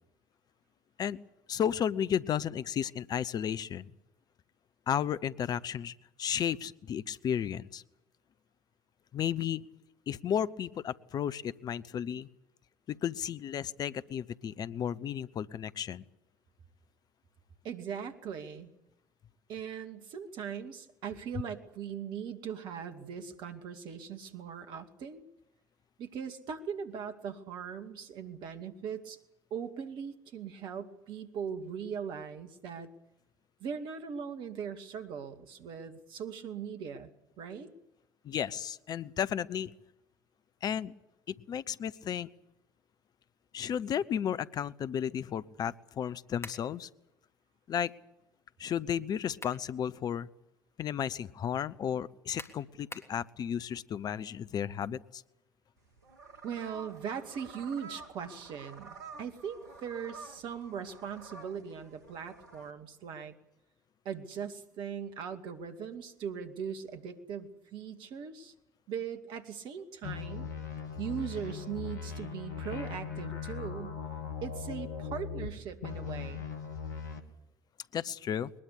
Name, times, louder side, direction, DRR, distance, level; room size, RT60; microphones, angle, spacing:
voice 1, 1.5-3.9 4.9-7.8 9.1-9.6 10.1-12.3 12.9-16.0 38.2-39.7 40.6-40.9 41.3-42.3 43.5-46.9 47.7-47.9 48.6-50.3 50.8-55.2 77.9-78.5, left 9 dB, 45° left, 17 dB, 0.9 m, -33 dB
voice 2, 17.6-18.7 19.5-25.2 26.0-29.2 29.5-32.9 33.6-37.7 56.4-63.3 64.0-68.5 68.9-70.5 71.0-74.0 74.4-76.5, right 7 dB, 55° right, 7 dB, 2.4 m, -40 dB
sound 1, 46.4-46.7 49.1-49.7 50.2-50.3 52.4-53.2, left 3 dB, 30° left, 3.4 m, -45 dB
sound 2, 55.8-62.7, right 4 dB, 80° right, 2.2 m, -50 dB
sound 3, 70.0-75.5 75.8-77.2, left 6 dB, 80° left, 2.1 m, -39 dB
22.0 x 21.0 x 8.3 m, 0.85 s
figure-of-eight pair, 55°, 9 cm